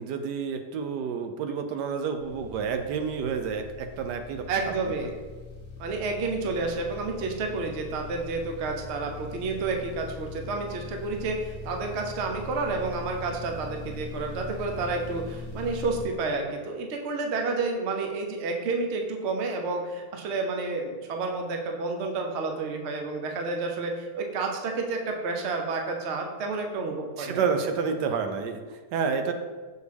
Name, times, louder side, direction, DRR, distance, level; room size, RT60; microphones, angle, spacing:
voice 1, 0.0-4.4 26.9-29.3, right 6 dB, 80° right, 7 dB, 1.2 m, -29 dB
sound 1, 2.2-16.1, left 3 dB, 40° left, 1.1 m, -41 dB
voice 2, 4.5-5.2 5.8-27.4, right 3 dB, 55° right, 3 dB, 0.8 m, -30 dB
6.6 x 4.5 x 3.4 m, 1.4 s
omnidirectional pair, 1.8 m